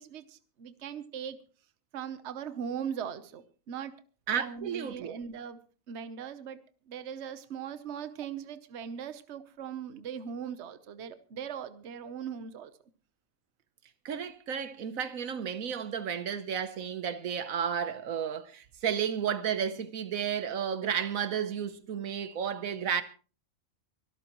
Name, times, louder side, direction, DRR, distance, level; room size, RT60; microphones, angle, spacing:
voice 1, 0.0-1.4 1.9-3.9 4.3-5.6 5.9-6.6 6.9-12.7, right 8 dB, 55° right, 1.2 m, -39 dB
voice 2, 4.3-5.2 14.0-23.0, right 8 dB, 75° right, 1.4 m, -32 dB
24.0 x 13.0 x 3.0 m
omnidirectional pair, 1.4 m